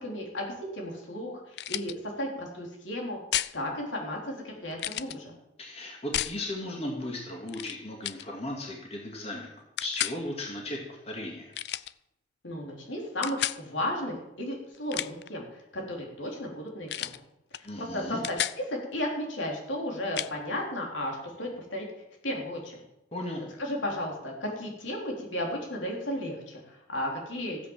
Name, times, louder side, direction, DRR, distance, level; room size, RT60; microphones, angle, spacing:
voice 1, 0.0-3.2 3.5-5.3 12.4-17.2 17.5-22.8 23.6-27.6, left 1 dB, 80° left, 0 dB, 4.2 m, -34 dB
sound 1, 1.5-1.9 3.3-3.6 4.8-5.2 6.1-6.4 7.5-7.8 8.0-8.3 9.8-10.2 11.5-11.9 13.2-13.6 14.7-15.3 16.9-17.2 17.5-17.7 18.0-18.6 20.2-20.3, left 12 dB, 60° left, 0.4 m, -32 dB
voice 2, 5.6-9.5 9.8-11.5 17.6-18.2 23.1-23.4, left 1 dB, 30° left, -1 dB, 2.4 m, -36 dB
15.5 x 8.3 x 7.5 m, 0.86 s
head